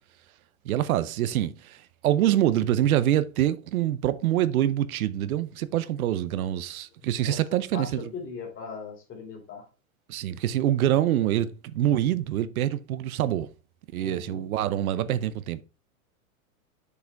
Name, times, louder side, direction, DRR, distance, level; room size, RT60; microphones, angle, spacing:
voice 1, 0.6-8.1 10.1-13.5 13.9-15.6, right 12 dB, 80° right, 0.7 m, -25 dB
voice 2, 7.0-7.4 7.7-9.6 13.9-14.4, left 5 dB, 30° left, 2.7 m, -40 dB
6.6 x 5.0 x 3.4 m
hypercardioid pair, 130°, 42 cm